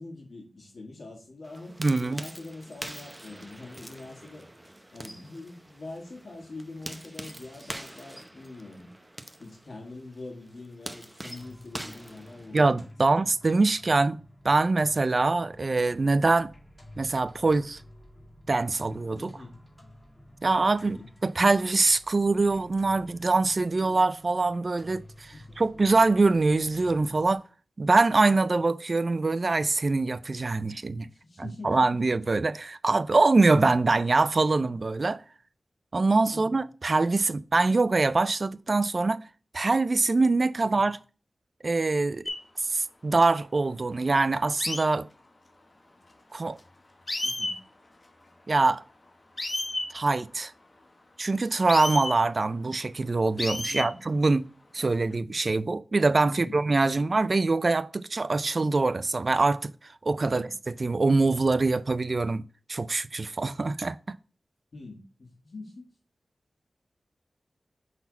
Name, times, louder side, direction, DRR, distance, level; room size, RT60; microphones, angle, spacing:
voice 1, 0.0-4.5 4.9-8.9 9.4-12.8 13.0-13.3 15.4-15.6 19.2-19.6 20.8-21.1 25.3-25.8 31.1-31.9 36.3-36.6 40.7-40.8 47.2-47.6 53.7-54.0 56.3-57.1 60.2-60.5 64.7-65.9, left 2 dB, 70° left, 1.8 m, -44 dB
sound 1, 1.4-12.9, right 1 dB, 15° right, 0.7 m, -44 dB
voice 2, 1.8-2.2 12.5-14.2 14.4-16.5 17.0-17.8 18.5-19.3 20.4-27.4 27.8-31.1 31.4-35.2 35.9-39.2 39.5-41.0 41.6-42.2 42.6-45.1 46.3-46.6 48.5-48.8 49.9-50.5 51.2-59.7 60.0-62.4 62.7-64.0, right 3 dB, 55° right, 0.4 m, -24 dB
sound 2, 11.4-27.3, equal, 15° left, 2.4 m, -51 dB
sound 3, 42.2-42.4 44.6-44.8 46.6-46.7 47.1-47.6 49.4-49.9 51.6-52.2 53.4-53.9 54.8-55.1, left 2 dB, 40° left, 0.9 m, -31 dB
5.7 x 4.1 x 4.1 m
wide cardioid pair, 60°, 0 cm